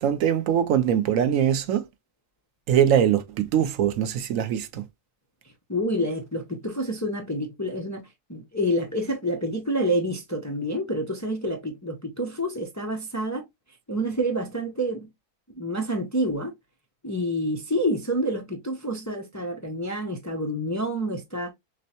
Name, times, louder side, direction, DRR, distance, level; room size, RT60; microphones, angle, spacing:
voice 1, 0.0-1.8 2.7-4.8, right 9 dB, 75° right, 1.0 m, -22 dB
voice 2, 5.7-8.0 8.3-13.5 13.9-15.1 15.6-16.5 17.0-21.5, equal, 20° left, 0.5 m, -28 dB
6.1 x 2.1 x 2.8 m
omnidirectional pair, 1.4 m